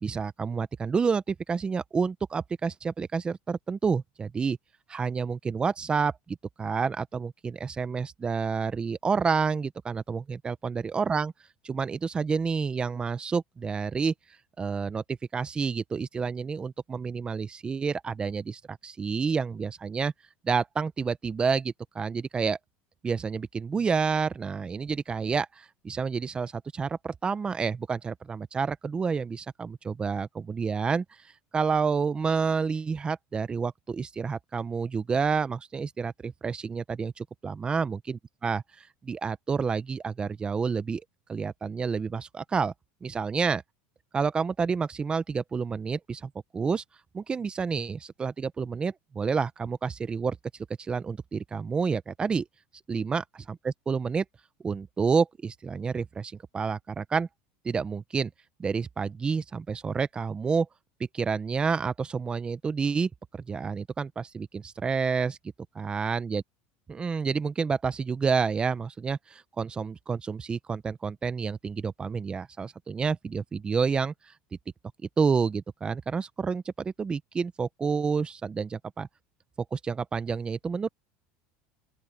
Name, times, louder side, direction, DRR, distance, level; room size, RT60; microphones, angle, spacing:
voice 1, 0.0-4.6 4.9-11.3 11.6-14.1 14.6-20.1 20.4-22.6 23.0-31.0 31.5-41.0 41.3-42.7 43.0-43.6 44.1-46.8 47.1-50.4 50.8-52.4 52.9-54.2 54.6-57.3 57.6-58.3 58.6-60.7 61.1-63.1 63.5-65.4 65.7-66.4 66.9-74.1 75.2-79.1 79.7-80.9, right 5 dB, 20° right, 0.8 m, -29 dB
open air
supercardioid pair, 130°, 5 cm